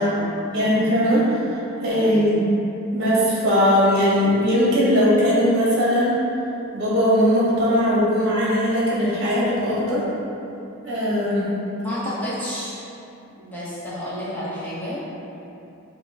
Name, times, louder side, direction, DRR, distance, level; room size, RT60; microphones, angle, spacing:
voice 1, 0.0-0.7 1.9-2.2 11.8-12.8 13.4-15.0, equal, 10° left, -11 dB, 1.2 m, -31 dB
voice 2, 0.5-2.5 2.9-6.1 6.7-10.0 10.8-11.5, equal, 55° right, -7 dB, 1.2 m, -19 dB
5.9 x 2.3 x 3.5 m, 2.8 s
head